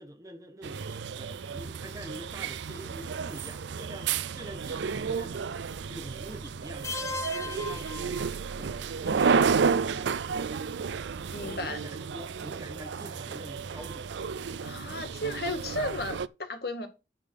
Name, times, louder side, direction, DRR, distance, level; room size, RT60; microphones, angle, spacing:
voice 1, 0.0-5.5 5.9-7.0 7.4-9.5 11.4-14.2, right 1 dB, 20° right, 1.3 m, -45 dB
sound 1, 0.6-16.3, right 5 dB, 75° right, 0.4 m, -31 dB
sound 2, 6.8-8.8, left 3 dB, 15° left, 0.5 m, -37 dB
voice 2, 11.3-11.8 14.6-16.9, left 1 dB, 55° left, 1.9 m, -34 dB
9.8 x 3.8 x 6.3 m
head